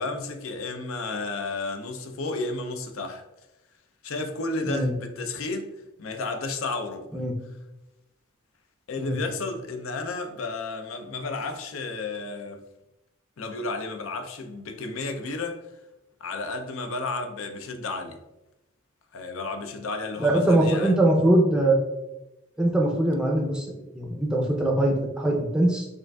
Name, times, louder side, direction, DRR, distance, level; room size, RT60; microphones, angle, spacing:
voice 1, 0.0-3.2 4.0-7.1 8.9-12.6 13.4-15.6 16.2-18.2 19.1-20.9, left 3 dB, 85° left, 0.5 m, -32 dB
voice 2, 20.2-21.8 22.6-25.9, right 1 dB, 5° right, 0.4 m, -22 dB
6.4 x 2.5 x 2.2 m
head